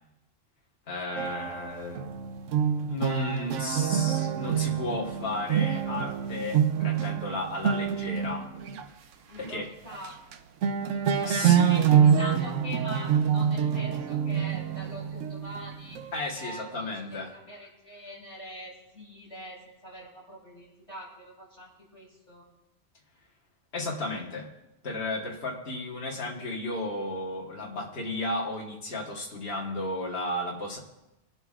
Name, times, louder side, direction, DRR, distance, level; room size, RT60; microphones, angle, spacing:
voice 1, 0.9-2.1 2.9-8.5 9.3-9.7 11.2-11.8 16.1-17.3 23.7-24.5 24.8-30.8, left 2 dB, 55° left, -3 dB, 1.7 m, -33 dB
sound 1, 1.2-8.9 9.4-9.6 9.9-10.3 10.6-16.2, right 8 dB, 90° right, 1.0 m, -26 dB
voice 2, 9.3-10.2 11.7-16.0 16.4-22.5, equal, 25° left, -6 dB, 3.6 m, -43 dB
22.5 x 7.8 x 2.5 m, 0.96 s
omnidirectional pair, 1.3 m